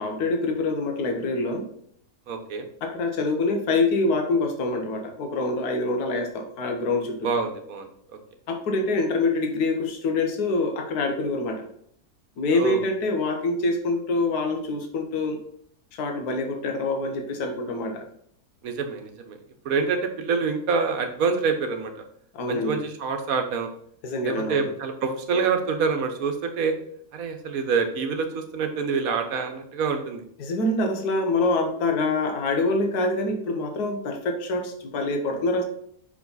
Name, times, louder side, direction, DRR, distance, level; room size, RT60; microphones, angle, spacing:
voice 1, 0.0-1.6 2.8-7.3 8.5-11.7 12.4-15.4 15.9-18.1 22.3-22.8 24.0-24.7 30.4-35.6, left 2 dB, 70° left, 4 dB, 1.5 m, -25 dB
voice 2, 2.3-2.6 7.2-7.9 12.5-12.8 18.6-19.4 19.6-21.9 22.5-23.7 24.2-26.7 27.1-30.2, right 5 dB, 60° right, 6 dB, 1.3 m, -26 dB
6.0 x 5.0 x 4.0 m, 0.66 s
omnidirectional pair, 1.7 m